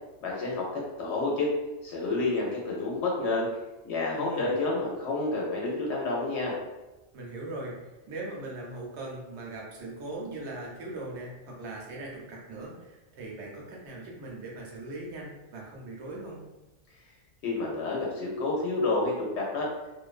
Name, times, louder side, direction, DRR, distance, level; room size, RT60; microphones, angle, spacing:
voice 1, 0.2-1.5 1.8-3.5 3.8-6.5 17.4-19.7, left 2 dB, 70° left, -3 dB, 0.8 m, -29 dB
voice 2, 4.1-4.5 7.1-16.5, right 2 dB, 70° right, -2 dB, 0.9 m, -40 dB
2.5 x 2.1 x 2.4 m, 1.0 s
omnidirectional pair, 1.2 m